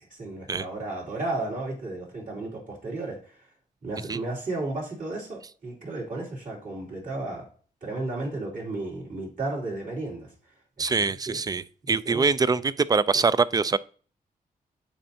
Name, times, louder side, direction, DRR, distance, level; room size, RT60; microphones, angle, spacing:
voice 1, 0.1-3.3 3.8-7.5 7.8-10.3 10.8-11.4 11.8-12.2 13.1-13.2, right 2 dB, 55° right, 3.0 m, -34 dB
voice 2, 10.8-13.8, right 4 dB, 25° right, 0.3 m, -24 dB
9.0 x 4.2 x 2.8 m
cardioid pair, 65°, 16 cm